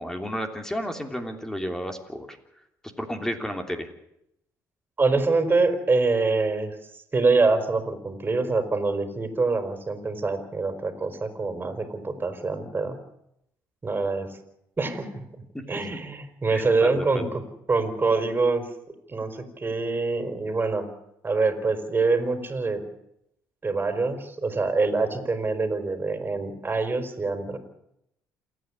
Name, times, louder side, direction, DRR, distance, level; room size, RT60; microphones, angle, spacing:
voice 1, 0.0-2.4 3.0-3.9 15.5-15.6 16.5-17.3, equal, 5° left, 5 dB, 3.2 m, -32 dB
voice 2, 5.0-13.0 13.8-14.4 14.8-15.2 15.7-17.3 17.7-18.7 19.1-20.9 21.2-22.8 23.6-27.6, right 3 dB, 25° right, 7 dB, 4.3 m, -25 dB
28.0 x 9.5 x 9.9 m, 0.79 s
supercardioid pair, 70°, 7 cm